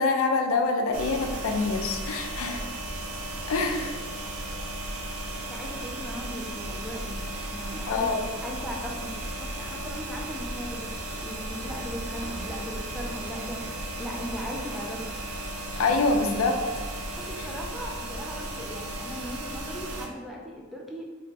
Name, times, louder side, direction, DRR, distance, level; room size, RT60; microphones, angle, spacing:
voice 1, 0.0-2.7 3.5-4.0 7.8-8.2 15.7-16.8, left 3 dB, 70° left, 4 dB, 0.4 m, -26 dB
sound 1, 0.9-20.1, right 1 dB, 90° right, 0.5 m, -35 dB
voice 2, 5.5-7.2 7.5-10.9 11.2-15.2 17.2-21.0, equal, ahead, -2 dB, 0.3 m, -38 dB
3.0 x 2.6 x 3.2 m, 1.5 s
head